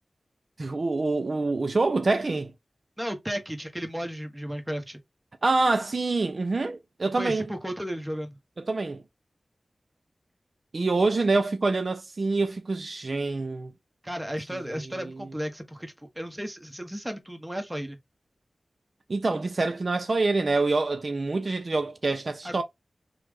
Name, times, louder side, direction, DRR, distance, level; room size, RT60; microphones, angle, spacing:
voice 1, 0.6-2.5 5.4-7.5 8.7-9.0 10.7-13.7 15.0-15.1 19.1-22.6, right 3 dB, 60° right, 0.3 m, -26 dB
voice 2, 3.0-5.0 7.2-8.4 14.0-18.0 22.4-22.6, equal, 10° right, 0.8 m, -34 dB
3.1 x 2.0 x 3.3 m
wide cardioid pair, 55°, 0 cm